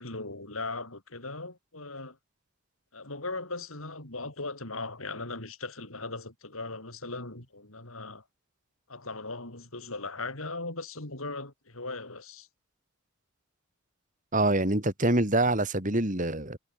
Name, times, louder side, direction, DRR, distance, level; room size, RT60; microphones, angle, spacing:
voice 1, 0.0-2.2 2.9-8.2 8.9-12.5, left 3 dB, 75° left, 6.0 m, -38 dB
voice 2, 14.3-16.6, right 2 dB, 35° right, 3.6 m, -25 dB
head